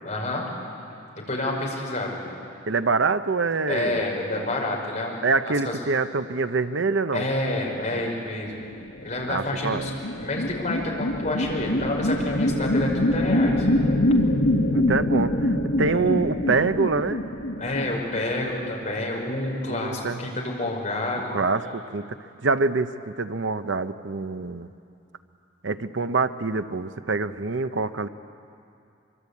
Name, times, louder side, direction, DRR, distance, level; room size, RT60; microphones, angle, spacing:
voice 1, 0.0-0.5 1.3-2.2 3.7-5.8 7.1-8.6 9.0-13.7 15.9-16.1 17.6-21.4, left 2 dB, 40° left, -2 dB, 5.4 m, -29 dB
voice 2, 2.7-4.1 5.2-7.3 9.3-9.9 14.7-15.5 15.8-17.2 19.7-20.2 21.3-22.0 22.4-22.9 23.2-24.7 25.6-28.1, right 4 dB, 70° right, 11 dB, 0.8 m, -25 dB
sound 1, 8.9-18.7, left 1 dB, 80° left, 2.0 m, -24 dB
25.5 x 23.5 x 8.5 m, 2.6 s
head